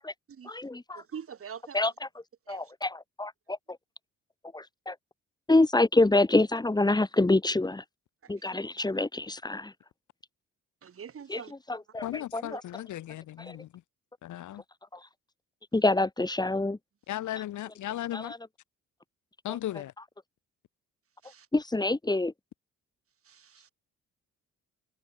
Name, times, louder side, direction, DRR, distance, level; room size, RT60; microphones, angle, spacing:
voice 1, 0.4-1.0 1.7-1.9 2.5-3.6 4.5-5.0 5.5-7.8 8.3-9.7 11.3-11.4 11.7-12.6 13.4-13.6 14.9-15.0 15.7-16.8 18.1-18.4 19.5-19.6 21.5-22.3, left 2 dB, 15° left, 2.3 m, -26 dB
voice 2, 0.9-1.9 2.5-2.7 8.2-8.5 10.8-11.5 12.5-12.6 21.2-21.5 23.2-23.7, right 7 dB, 45° right, 2.6 m, -45 dB
voice 3, 12.0-13.7 14.2-14.6 17.1-18.3 19.4-19.9, left 13 dB, 75° left, 1.7 m, -36 dB
cardioid pair, 90°, 30 cm